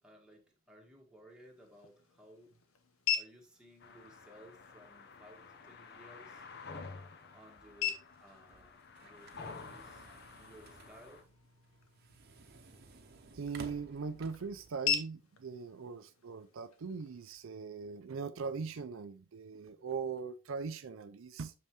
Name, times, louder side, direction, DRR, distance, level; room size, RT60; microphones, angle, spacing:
voice 1, 0.0-2.6 3.1-6.4 7.3-8.7 9.0-10.1 10.4-11.3, equal, 5° right, 1.3 m, -58 dB
sound 1, 1.3-17.3, left 8 dB, 85° left, 0.9 m, -43 dB
sound 2, 3.8-11.2, left 4 dB, 50° left, 0.7 m, -51 dB
sound 3, 8.1-14.7, right 3 dB, 50° right, 0.8 m, -55 dB
voice 2, 13.3-21.5, right 5 dB, 70° right, 0.5 m, -40 dB
6.7 x 5.3 x 2.9 m
head